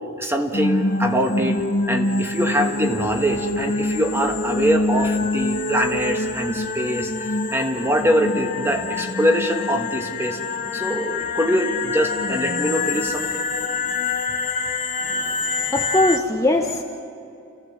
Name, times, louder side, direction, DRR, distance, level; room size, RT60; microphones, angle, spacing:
voice 1, 0.2-10.4 10.7-13.5, equal, 10° right, 4 dB, 1.5 m, -23 dB
sound 1, 0.5-16.2, left 3 dB, 40° left, 1.0 m, -25 dB
voice 2, 15.0-16.8, left 2 dB, 15° left, 2 dB, 1.1 m, -22 dB
29.5 x 15.0 x 7.5 m, 2.6 s
head